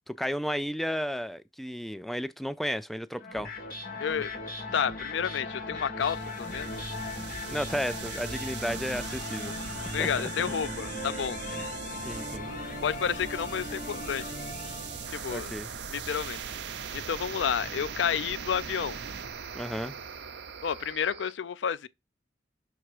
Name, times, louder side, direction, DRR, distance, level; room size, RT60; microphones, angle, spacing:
voice 1, 0.1-3.5 7.5-9.5 10.0-10.1 11.5-11.7 12.0-12.5 15.3-15.7 19.6-20.0, equal, ahead, 0.3 m, -33 dB
sound 1, 3.2-15.4, left 2 dB, 50° left, 1.7 m, -38 dB
voice 2, 4.0-4.3 4.7-6.7 9.9-11.4 12.8-14.3 15.1-15.5 15.9-16.4 16.9-19.0 20.6-21.9, left 7 dB, 80° left, 0.4 m, -30 dB
sound 2, 6.0-21.3, right 6 dB, 65° right, 0.7 m, -40 dB
5.9 x 3.4 x 4.8 m
head